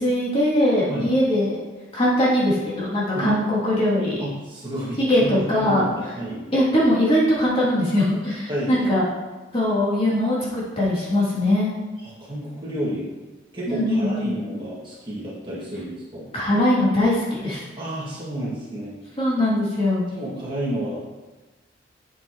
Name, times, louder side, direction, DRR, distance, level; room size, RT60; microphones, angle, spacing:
voice 1, 0.0-1.6 1.9-4.2 5.0-5.9 6.5-9.0 9.5-11.7 13.7-14.3 16.3-17.6 19.2-20.0, left 1 dB, 30° left, -8 dB, 2.8 m, -21 dB
voice 2, 4.2-5.3 5.6-6.4 8.5-8.7 12.0-13.1 13.5-16.3 17.8-18.9 20.1-21.0, right 1 dB, 25° right, -7 dB, 2.1 m, -31 dB
8.0 x 7.9 x 3.0 m, 1.2 s
head